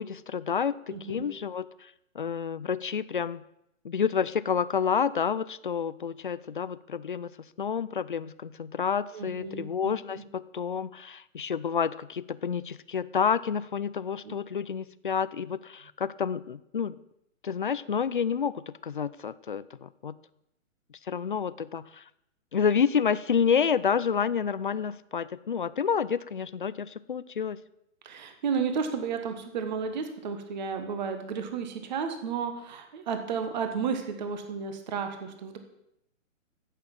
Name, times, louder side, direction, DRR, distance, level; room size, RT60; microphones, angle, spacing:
voice 1, 0.0-3.4 3.8-7.3 7.6-17.0 17.4-20.2 21.1-22.0 22.5-27.6, left 7 dB, 40° left, 17 dB, 0.4 m, -29 dB
voice 2, 0.9-1.3 9.1-10.2 14.2-14.4 28.0-35.6, right 6 dB, 35° right, 7 dB, 1.4 m, -33 dB
12.5 x 8.4 x 7.3 m, 0.81 s
hypercardioid pair, 165°, 40 cm